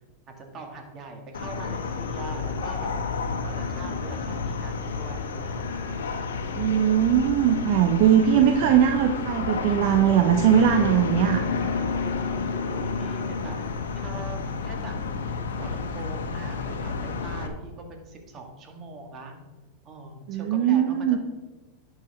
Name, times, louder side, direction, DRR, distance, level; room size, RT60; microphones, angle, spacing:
voice 1, 0.3-2.9 3.4-5.9 12.7-13.6 13.9-14.9 15.3-19.4 19.8-21.2, right 3 dB, 35° right, 3 dB, 2.1 m, -42 dB
sound 1, 1.3-17.5, left 4 dB, 85° left, 1.1 m, -30 dB
voice 2, 6.6-11.4 20.3-21.2, right 9 dB, 60° right, 6 dB, 0.7 m, -20 dB
11.0 x 6.0 x 4.4 m, 1.2 s
hypercardioid pair, 115°, 0 cm